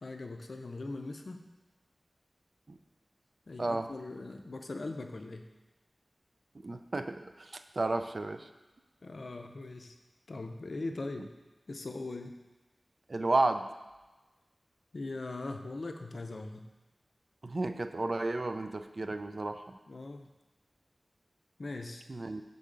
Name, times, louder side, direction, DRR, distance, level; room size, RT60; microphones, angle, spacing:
voice 1, 0.0-1.4 3.5-5.5 9.0-10.0 10.3-11.3 11.7-12.4 14.9-16.7 19.9-20.3 21.6-22.1, left 2 dB, 70° left, 5 dB, 0.5 m, -40 dB
voice 2, 3.6-3.9 6.6-8.5 11.2-11.3 13.1-13.7 17.4-19.8 22.1-22.4, right 2 dB, 55° right, 8 dB, 0.3 m, -32 dB
6.6 x 3.9 x 3.7 m, 1.1 s
wide cardioid pair, 80°, 0 cm